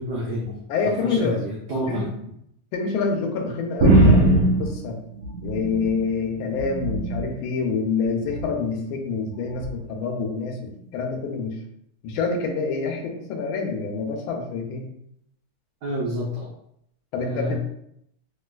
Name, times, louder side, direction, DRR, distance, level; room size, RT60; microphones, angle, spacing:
voice 1, 0.0-0.5 0.8-2.1 15.8-16.5 17.2-17.5, equal, 90° right, -4 dB, 0.8 m, -28 dB
voice 2, 0.7-1.4 1.9-2.1 2.7-5.0 5.4-11.6 12.0-14.8 17.1-17.6, left 4 dB, 75° left, 1 dB, 1.3 m, -27 dB
sound 1, 3.8-6.0 6.4-7.3 8.2-8.6 9.6-9.7, right 1 dB, 50° right, 1.1 m, -20 dB
3.2 x 3.0 x 2.2 m, 0.74 s
omnidirectional pair, 2.4 m